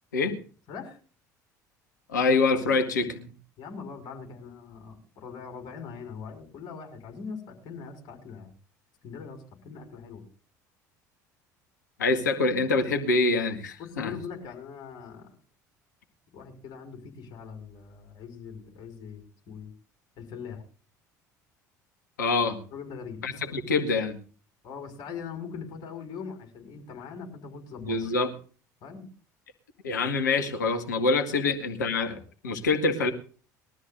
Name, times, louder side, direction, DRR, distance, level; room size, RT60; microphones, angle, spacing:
voice 1, 0.7-1.0 3.6-8.5 9.0-10.2 13.8-15.3 16.3-19.7 20.2-20.6 22.7-23.2 24.6-28.0 28.8-29.1 31.3-31.4, left 6 dB, 50° left, 3 dB, 5.5 m, -41 dB
voice 2, 2.1-3.3 12.0-14.2 22.2-22.6 23.2-24.2 27.8-28.3 29.8-33.1, left 3 dB, 80° left, 7 dB, 1.9 m, -25 dB
21.5 x 13.0 x 2.6 m, 0.40 s
figure-of-eight pair, 65°, 10 cm